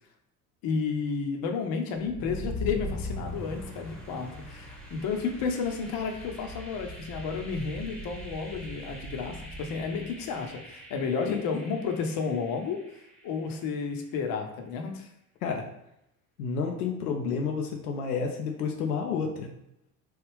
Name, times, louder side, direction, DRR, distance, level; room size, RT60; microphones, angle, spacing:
voice 1, 0.6-12.8 13.2-15.1, left 5 dB, 50° left, 4 dB, 0.7 m, -32 dB
sound 1, 2.0-13.8, equal, ahead, 0.8 m, -41 dB
voice 2, 16.4-19.5, left 5 dB, 85° left, 2 dB, 0.6 m, -30 dB
3.2 x 2.4 x 3.3 m, 0.79 s
hypercardioid pair, 70°, 45 cm